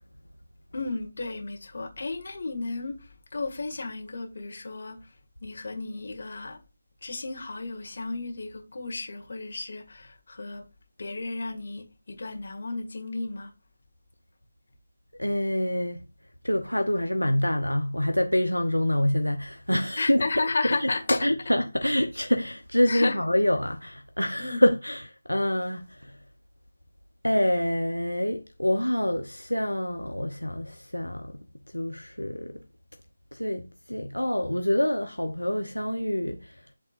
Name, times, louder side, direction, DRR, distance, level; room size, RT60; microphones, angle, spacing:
voice 1, 0.7-5.0 5.4-6.6 7.0-10.6 11.0-13.5 20.0-21.2 22.9-23.2 24.4-24.6, left 3 dB, 50° left, 1.9 m, -33 dB
voice 2, 15.2-16.0 16.4-20.3 20.6-20.9 21.2-26.2 27.2-31.4 31.7-32.6 33.3-36.6, left 1 dB, 90° left, 0.9 m, -26 dB
11.0 x 3.7 x 2.5 m
figure-of-eight pair, 155°, 0 cm